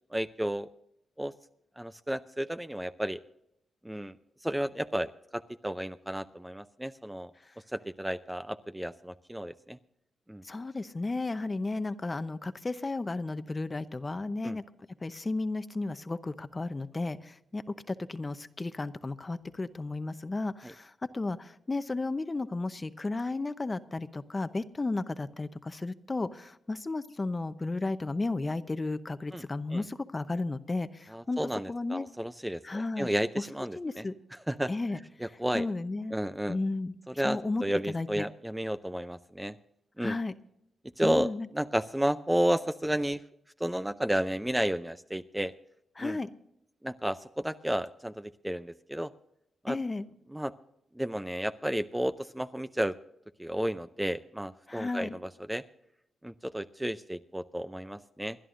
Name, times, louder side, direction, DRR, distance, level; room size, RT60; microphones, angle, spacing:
voice 1, 0.1-0.7 1.2-1.3 1.8-3.2 3.8-4.1 4.4-7.3 7.7-9.8 10.3-10.4 14.4-14.6 20.6-20.7 29.3-29.4 29.7-29.8 31.1-34.0 34.5-34.7 35.2-35.7 36.1-36.6 37.1-39.5 40.0-40.2 41.0-43.2 43.6-45.5 46.0-46.2 46.8-49.1 49.6-49.8 50.3-50.5 51.0-52.9 53.4-55.2 55.5-55.6 56.2-58.4, right 1 dB, 5° right, 11 dB, 0.5 m, -32 dB
voice 2, 10.4-14.6 15.0-17.6 17.9-32.0 32.6-33.1 33.7-34.1 34.7-35.0 35.5-36.2 36.5-36.9 37.2-38.3 40.0-40.3 41.0-41.5 46.0-46.3 49.7-50.1 54.7-55.2, left 3 dB, 25° left, 12 dB, 0.7 m, -33 dB
28.0 x 11.0 x 2.6 m, 0.79 s
cardioid pair, 85°, 0 cm